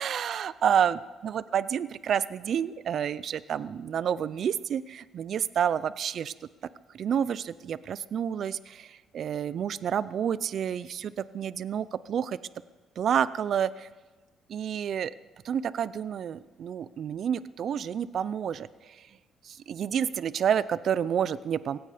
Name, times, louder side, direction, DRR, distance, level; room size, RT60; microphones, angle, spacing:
voice 1, 0.0-6.3 6.9-12.4 13.0-13.9 14.5-15.1 15.4-19.0 19.4-21.8, right 8 dB, 60° right, 17 dB, 0.5 m, -29 dB
17.5 x 16.0 x 5.0 m, 1.3 s
cardioid pair, 90°, 0 cm